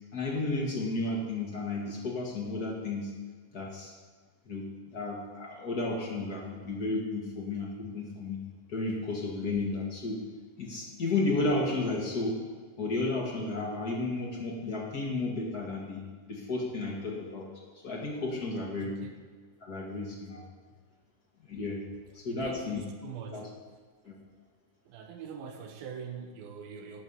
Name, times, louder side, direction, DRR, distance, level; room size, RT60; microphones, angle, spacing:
voice 1, 0.1-3.1 3.5-3.9 4.4-8.4 8.7-10.2 10.6-12.4 12.8-16.0 16.3-17.5 17.8-19.1 19.6-20.4 21.5-21.8 22.1-22.8 23.3-23.5 24.0-24.2, left 2 dB, 45° left, -1 dB, 1.2 m, -33 dB
voice 2, 18.8-19.1 21.9-23.5 24.9-27.0, right 6 dB, 80° right, 3 dB, 2.8 m, -44 dB
17.5 x 6.4 x 5.5 m, 1.5 s
omnidirectional pair, 4.2 m